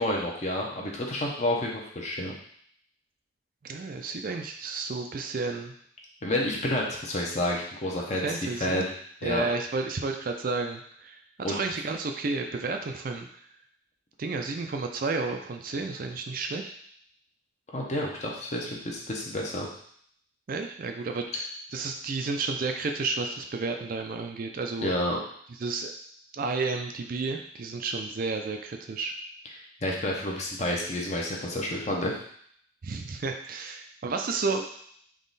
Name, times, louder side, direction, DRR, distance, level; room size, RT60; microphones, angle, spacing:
voice 1, 0.0-2.3 6.2-8.9 9.2-9.5 11.4-11.6 17.7-19.7 24.8-25.2 29.8-32.1, left 1 dB, 35° left, -1 dB, 0.7 m, -29 dB
voice 2, 3.6-5.7 8.2-8.9 9.2-13.3 14.2-16.7 20.5-21.5 21.7-24.9 25.6-25.9 26.3-29.1 32.8-34.7, right 3 dB, 45° right, 4 dB, 0.4 m, -31 dB
3.7 x 3.0 x 4.0 m, 0.64 s
head